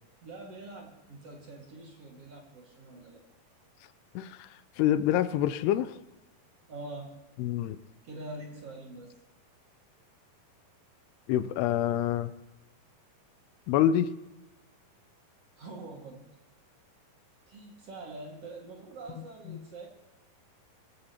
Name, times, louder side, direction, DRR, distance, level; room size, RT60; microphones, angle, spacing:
voice 1, 0.2-3.2 6.7-7.2 8.0-9.1 15.6-16.2 17.5-19.9, right 2 dB, 45° right, 0 dB, 2.4 m, -44 dB
voice 2, 4.2-4.5 4.8-6.0 7.4-7.8 11.3-12.3 13.7-14.1, left 11 dB, 90° left, 13 dB, 2.7 m, -26 dB
22.0 x 14.0 x 2.9 m, 1.0 s
omnidirectional pair, 4.6 m